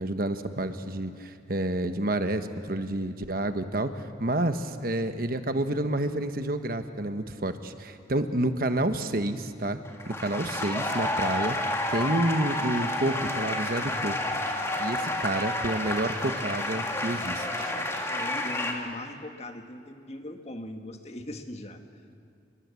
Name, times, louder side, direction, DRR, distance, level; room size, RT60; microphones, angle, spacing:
voice 1, 0.0-9.8 10.1-11.6 11.9-14.1 14.8-17.7, right 1 dB, 50° right, 8 dB, 1.2 m, -29 dB
sound 1, 9.9-18.7, left 1 dB, 15° left, 2.2 m, -30 dB
voice 2, 18.1-22.0, left 1 dB, 35° left, 5 dB, 1.7 m, -40 dB
28.5 x 21.5 x 8.4 m, 2.4 s
head